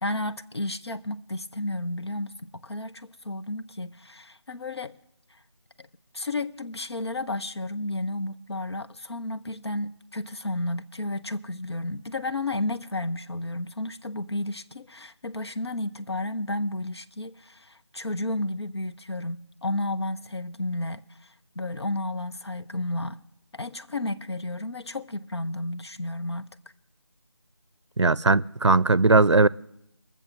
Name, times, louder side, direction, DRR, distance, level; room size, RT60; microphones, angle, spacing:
voice 1, 0.0-4.9 5.3-5.4 5.8-5.9 6.1-23.2 23.5-26.5, left 2 dB, 65° left, 0.7 m, -32 dB
voice 2, 28.0-29.5, right 3 dB, 80° right, 0.5 m, -19 dB
21.5 x 7.3 x 6.9 m
figure-of-eight pair, 165°, 15 cm